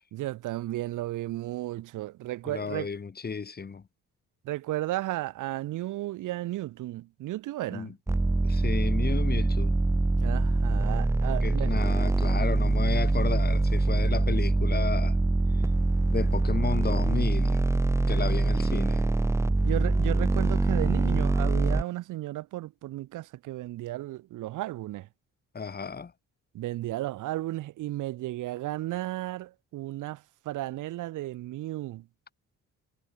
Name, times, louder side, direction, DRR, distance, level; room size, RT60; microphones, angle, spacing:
voice 1, 0.1-2.9 4.4-7.9 10.2-11.7 19.6-25.1 26.5-32.1, right 16 dB, 85° right, 1.7 m, -34 dB
voice 2, 2.5-3.8 7.7-7.9 8.4-9.8 11.3-15.2 16.1-17.6 18.1-19.0 25.5-26.1, left 5 dB, 30° left, 1.9 m, -33 dB
sound 1, 8.1-21.8, right 2 dB, 10° right, 0.6 m, -24 dB
cardioid pair, 90°, 30 cm